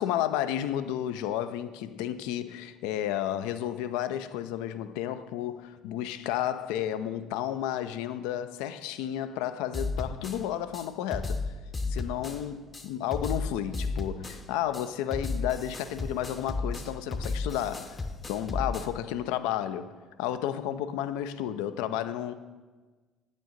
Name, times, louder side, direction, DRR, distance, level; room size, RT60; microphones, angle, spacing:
voice 1, 0.0-11.5 11.9-18.0 18.3-19.9 20.2-22.3, left 11 dB, 70° left, 0.3 m, -32 dB
sound 1, 9.7-10.4 10.7-10.9 11.1-12.4 12.7-12.9 13.1-14.4 14.7-14.9 15.1-18.9, left 3 dB, 30° left, 0.6 m, -33 dB
9.0 x 5.1 x 3.9 m
hypercardioid pair, 55°, 0 cm